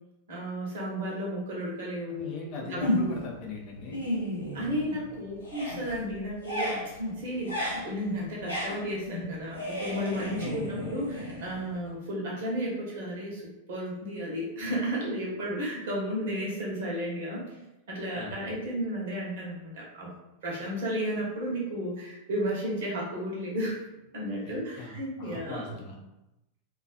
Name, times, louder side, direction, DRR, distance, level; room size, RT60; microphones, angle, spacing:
voice 1, 0.3-2.3 2.6-3.1 4.5-6.8 7.2-7.6 7.8-13.4 13.7-17.6 17.9-20.1 20.4-23.8 24.1-25.7, equal, 55° right, -4 dB, 0.9 m, -33 dB
voice 2, 2.1-4.0 10.4-11.0 18.1-18.5 24.8-26.0, left 3 dB, 40° left, -1 dB, 0.5 m, -40 dB
sound 1, 2.8-3.4 3.7-5.1 5.4-11.9, left 1 dB, 80° left, 0.7 m, -33 dB
2.3 x 2.3 x 2.4 m, 0.93 s
figure-of-eight pair, 90°, 0 cm